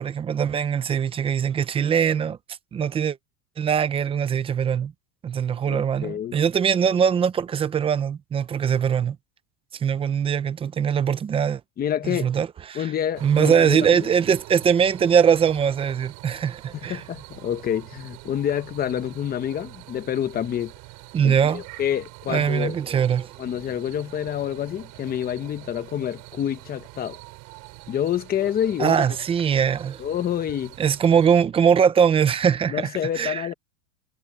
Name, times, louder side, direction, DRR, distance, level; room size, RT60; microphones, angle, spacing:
voice 1, 0.0-2.4 2.7-3.2 3.6-4.9 5.2-9.2 9.7-11.6 12.0-12.9 13.2-17.0 21.1-21.6 22.3-23.3 28.8-30.0 30.8-33.5, right 7 dB, 15° right, 0.5 m, -22 dB
voice 2, 5.7-6.4 11.8-12.3 12.7-14.1 16.8-20.7 21.2-22.8 23.4-27.2 27.9-29.1 30.0-30.7 32.7-33.5, left 10 dB, 20° left, 1.0 m, -28 dB
sound 1, 13.1-31.4, right 26 dB, 50° right, 5.6 m, -44 dB
supercardioid pair, 160°, 43 cm